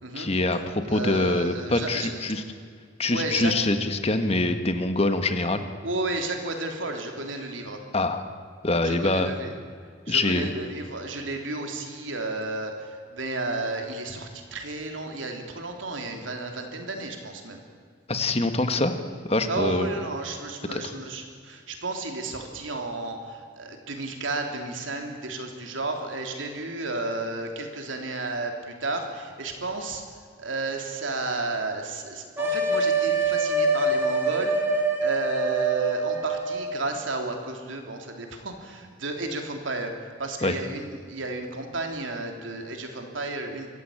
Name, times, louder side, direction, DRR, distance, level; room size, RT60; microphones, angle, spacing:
voice 1, 0.1-2.4 3.0-5.6 7.9-8.2 8.6-9.3 10.1-10.5 18.1-19.0 19.2-19.9 20.7-20.8 40.4-40.5, left 2 dB, 30° left, 8 dB, 1.6 m, -24 dB
voice 2, 0.9-2.1 3.1-3.5 5.8-7.8 8.8-9.5 10.1-17.6 19.5-30.0 30.4-39.9 40.2-43.7, right 2 dB, 80° right, 3 dB, 3.5 m, -32 dB
sound 1, 32.4-36.8, right 2 dB, 10° right, 3.7 m, -25 dB
24.5 x 15.5 x 8.8 m, 2.1 s
head